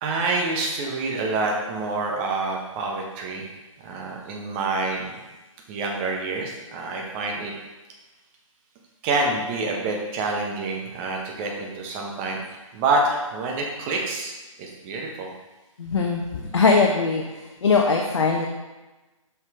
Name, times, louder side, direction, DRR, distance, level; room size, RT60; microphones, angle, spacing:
voice 1, 0.0-3.5 3.8-5.2 5.7-7.5 9.0-12.4 12.7-14.3 14.6-15.3, right 3 dB, 20° right, 0 dB, 1.0 m, -27 dB
voice 2, 15.8-17.2 17.6-18.5, left 4 dB, 55° left, 1 dB, 0.8 m, -20 dB
7.3 x 5.8 x 3.3 m, 1.1 s
figure-of-eight pair, 135°, 17 cm